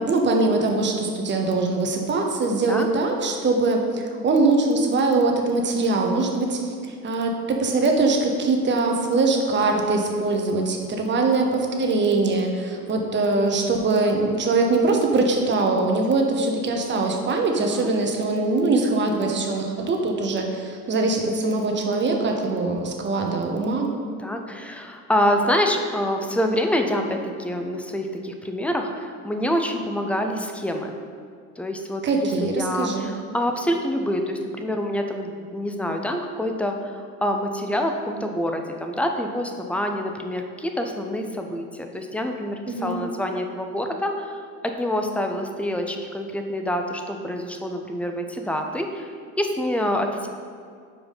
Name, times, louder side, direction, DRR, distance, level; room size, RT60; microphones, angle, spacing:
voice 1, 0.0-23.9 32.0-33.1 42.7-43.0, right 3 dB, 25° right, 2 dB, 1.0 m, -22 dB
voice 2, 17.6-17.9 24.2-31.0 31.6-50.3, equal, 5° left, 4 dB, 0.3 m, -26 dB
5.3 x 4.7 x 5.5 m, 2.1 s
hypercardioid pair, 80°, 44 cm